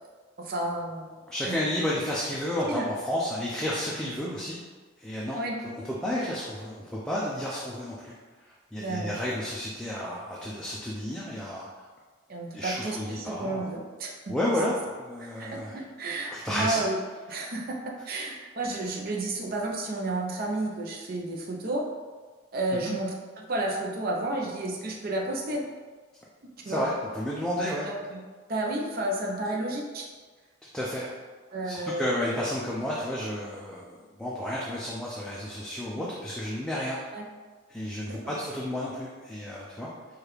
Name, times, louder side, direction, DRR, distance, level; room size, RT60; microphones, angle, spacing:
voice 1, 0.4-1.6 2.7-2.9 5.3-5.6 8.8-9.1 12.3-14.3 15.2-17.0 17.3-17.8 18.0-21.9 22.5-25.7 26.6-26.9 27.9-28.2 28.5-30.1 31.5-32.0 37.1-37.3 38.1-38.4, right 2 dB, 50° right, 0 dB, 0.6 m, -32 dB
voice 2, 1.3-4.6 5.0-5.4 5.7-11.7 12.5-13.7 14.3-15.8 16.2-16.8 22.7-22.9 26.6-27.9 30.7-31.1 31.6-37.0 37.7-39.9, left 1 dB, 5° left, -6 dB, 0.4 m, -31 dB
4.8 x 2.4 x 3.1 m, 1.4 s
head